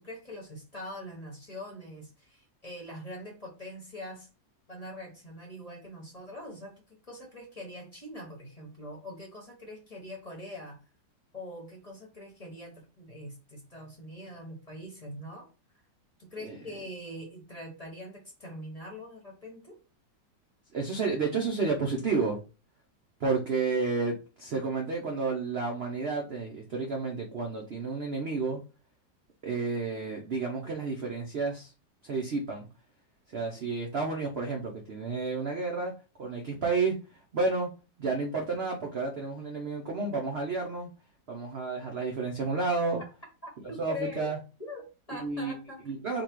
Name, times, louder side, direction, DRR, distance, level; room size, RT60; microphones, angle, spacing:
voice 1, 0.0-4.3 4.7-10.8 11.3-15.5 16.2-19.8 43.4-44.3 44.6-46.0, left 1 dB, 25° left, -1 dB, 1.0 m, -43 dB
voice 2, 20.7-22.4 23.2-28.6 29.4-31.7 32.0-32.7 33.3-37.0 37.3-37.7 38.0-40.9 41.3-43.0 43.8-44.4 45.1-45.5 45.8-46.2, right 4 dB, 60° right, 1 dB, 0.7 m, -31 dB
4.0 x 2.3 x 4.4 m, 0.31 s
omnidirectional pair, 1.9 m